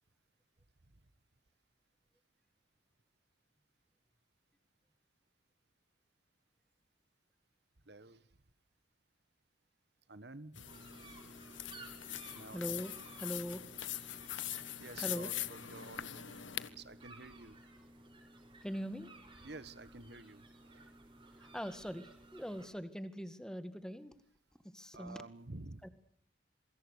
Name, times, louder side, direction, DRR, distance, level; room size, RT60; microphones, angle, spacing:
voice 1, 7.8-8.3 10.1-10.8 12.3-12.8 14.8-16.3 16.7-17.6 19.4-21.4 24.9-25.9, right 2 dB, 55° right, 15 dB, 1.4 m, -51 dB
sound 1, 10.6-16.7, left 12 dB, 80° left, 1.5 m, -43 dB
sound 2, 10.7-22.7, right 2 dB, 25° right, 6.5 m, -56 dB
voice 2, 12.5-12.9 13.2-13.7 15.0-15.3 18.6-19.1 21.4-24.1 24.6-25.2 25.8-25.9, equal, 5° left, 11 dB, 1.9 m, -42 dB
27.5 x 24.5 x 6.7 m, 0.62 s
head